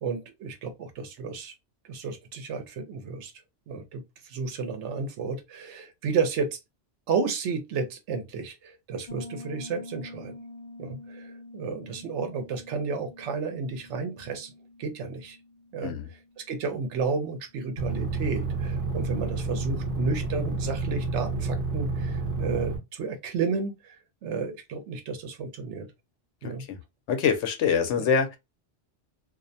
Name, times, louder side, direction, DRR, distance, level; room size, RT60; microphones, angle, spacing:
voice 1, 0.0-1.5 1.9-3.3 3.7-6.6 7.1-10.3 10.8-14.5 14.8-15.4 15.7-15.9 16.4-25.9 26.4-26.6 28.0-28.1, right 5 dB, 75° right, 0.9 m, -32 dB
Piano, 9.1-17.6, left 2 dB, 50° left, 0.5 m, -47 dB
sound 1, 17.8-22.8, right 3 dB, 45° right, 0.9 m, -29 dB
voice 2, 26.4-26.8 27.1-28.4, left 6 dB, 75° left, 0.9 m, -25 dB
2.4 x 2.1 x 2.6 m
omnidirectional pair, 1.2 m